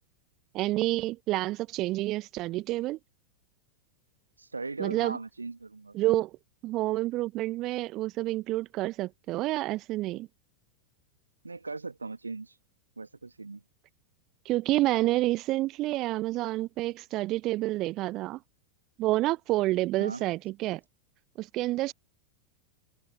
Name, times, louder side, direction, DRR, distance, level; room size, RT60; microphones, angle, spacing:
voice 1, 0.5-3.0 4.8-5.2 5.9-6.3 6.6-10.3 14.4-18.4 19.0-20.8 21.4-21.9, right 17 dB, 35° right, 0.9 m, -28 dB
voice 2, 4.4-6.0 11.4-12.5 13.0-13.6 20.0-20.2, right 3 dB, 80° right, 1.4 m, -38 dB
open air
figure-of-eight pair, 90°, 0 cm